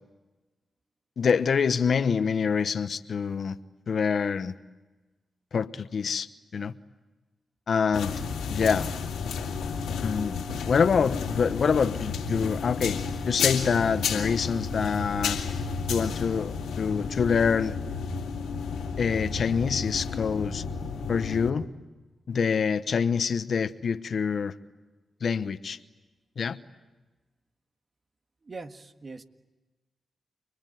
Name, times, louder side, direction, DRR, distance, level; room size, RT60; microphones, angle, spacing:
voice 1, 1.2-3.6 3.9-4.5 5.5-6.3 6.5-6.7 7.7-8.2 8.5-8.9 10.0-13.0 13.3-15.4 15.9-17.8 19.0-20.6 21.1-21.7 22.3-24.5 25.2-25.8 26.4-26.6, left 6 dB, 65° left, 12 dB, 1.0 m, -26 dB
sound 1, 7.9-21.5, left 5 dB, 85° left, 2.2 m, -32 dB
voice 2, 9.5-9.9 28.4-29.2, right 3 dB, 50° right, 7 dB, 1.7 m, -43 dB
30.0 x 20.5 x 9.3 m, 1.2 s
supercardioid pair, 40°, 0 cm